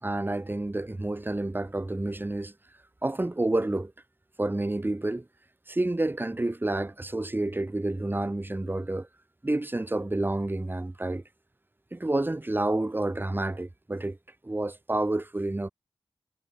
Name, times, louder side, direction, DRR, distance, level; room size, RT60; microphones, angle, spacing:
voice 1, 0.0-2.5 3.0-3.9 4.4-5.3 5.7-9.1 9.4-11.2 11.9-14.2 14.4-15.7, right 2 dB, 20° right, 3.7 m, -29 dB
wide cardioid pair, 95°, 9 cm